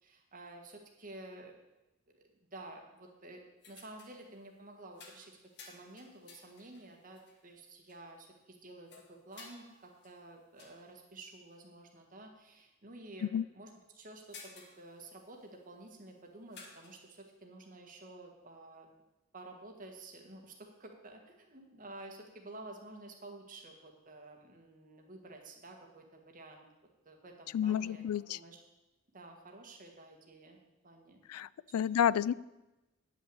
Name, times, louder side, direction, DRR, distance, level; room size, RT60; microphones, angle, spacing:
voice 1, 0.0-1.5 2.1-2.2 2.5-5.4 5.7-18.9 19.3-26.6 27.1-28.6 29.1-30.6 30.8-31.2 32.1-32.3, right 2 dB, 40° right, 2 dB, 1.7 m, -51 dB
sound 1, 3.6-4.3 5.0-7.4 7.9-8.0 8.9-10.9 11.5-11.6 11.9-12.0 14.0-15.5 16.5-17.2, left 4 dB, 55° left, 1.6 m, -56 dB
voice 2, 27.5-28.4 31.3-32.3, left 9 dB, 90° left, 21 dB, 0.3 m, -30 dB
9.8 x 5.9 x 7.8 m, 1.0 s
head